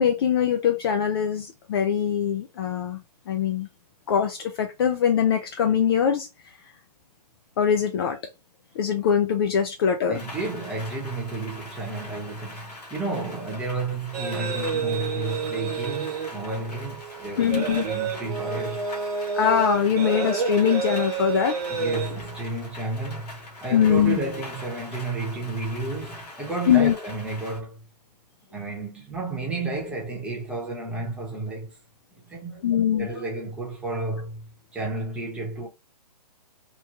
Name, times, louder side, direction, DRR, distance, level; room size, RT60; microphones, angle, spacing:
voice 1, 0.0-3.0 3.3-3.7 4.1-6.3 7.6-8.2 8.8-10.2 17.4-17.8 19.3-21.5 23.7-24.2 26.7-26.9 32.6-33.2, left 8 dB, 35° left, 0.4 m, -22 dB
voice 2, 10.0-18.8 21.7-27.8 28.5-31.7 32.2-32.6 33.0-35.7, right 3 dB, 5° right, 0.9 m, -32 dB
Rain, 10.1-27.6, left 2 dB, 70° left, 1.2 m, -43 dB
sound 1, 14.1-22.5, right 5 dB, 65° right, 1.1 m, -30 dB
3.0 x 2.2 x 2.8 m
hypercardioid pair, 140°, 21 cm